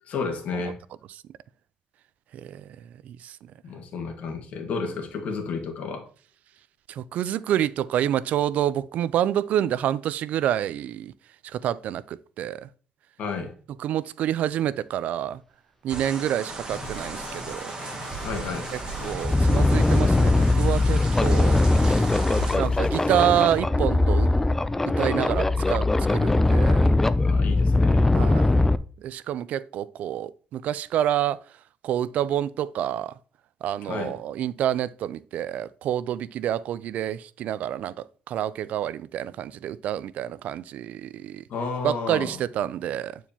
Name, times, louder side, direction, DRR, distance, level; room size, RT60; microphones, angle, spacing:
voice 1, 0.0-0.8 3.6-6.1 13.2-13.5 18.2-18.7 27.2-28.1 33.8-34.2 41.5-42.4, left 4 dB, 65° left, 1.6 m, -32 dB
voice 2, 2.3-2.6 3.0-3.4 6.9-11.1 11.5-12.7 13.8-15.4 15.8-17.7 18.7-22.1 22.6-24.3 25.0-26.9 28.1-28.5 29.0-31.4 31.8-33.1 33.6-41.4 41.8-43.2, right 11 dB, 75° right, 0.3 m, -28 dB
sound 1, 15.9-22.6, right 3 dB, 30° right, 1.7 m, -36 dB
sound 2, 16.7-23.6, left 4 dB, 45° left, 0.9 m, -41 dB
sound 3, 18.9-28.8, left 2 dB, 15° left, 0.3 m, -21 dB
8.8 x 4.6 x 2.8 m
cardioid pair, 95°, 3 cm